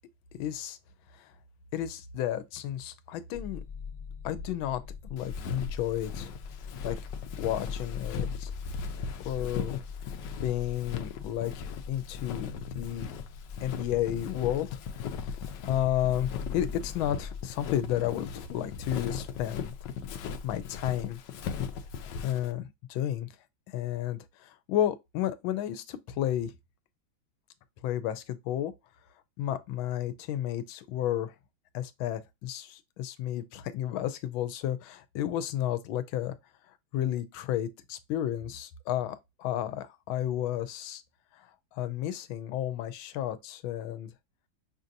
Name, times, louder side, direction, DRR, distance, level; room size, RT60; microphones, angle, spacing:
voice 1, 0.3-0.8 1.1-1.3 1.7-3.6 4.2-6.3 6.8-7.0 7.4-8.5 9.2-9.7 10.0-10.1 10.4-13.1 13.6-14.8 15.1-19.7 20.4-21.2 22.2-23.3 23.7-26.5 27.8-28.7 29.4-31.3 31.7-36.4 36.9-41.0 41.4-44.1, left 11 dB, 90° left, 1.4 m, -32 dB
sound 1, 3.3-17.4, left 6 dB, 45° left, 0.4 m, -42 dB
Walk footsteps, 5.2-22.5, left 7 dB, 75° left, 1.1 m, -38 dB
5.5 x 2.7 x 2.5 m
omnidirectional pair, 2.1 m